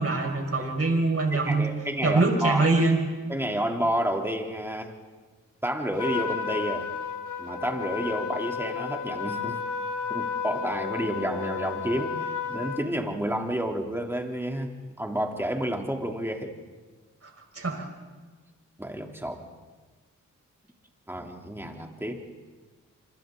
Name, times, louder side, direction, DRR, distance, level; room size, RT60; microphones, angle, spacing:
voice 1, 0.0-1.7 2.0-3.0 17.2-17.8, right 3 dB, 45° right, 2 dB, 5.4 m, -24 dB
voice 2, 1.4-2.6 3.3-4.9 5.6-6.9 7.4-9.6 10.1-16.5 18.8-19.5 21.1-22.2, equal, 5° right, 2 dB, 3.4 m, -30 dB
Trumpet, 6.0-12.9, left 6 dB, 65° left, 1.4 m, -32 dB
27.0 x 25.0 x 4.0 m, 1.4 s
cardioid pair, 50°, 32 cm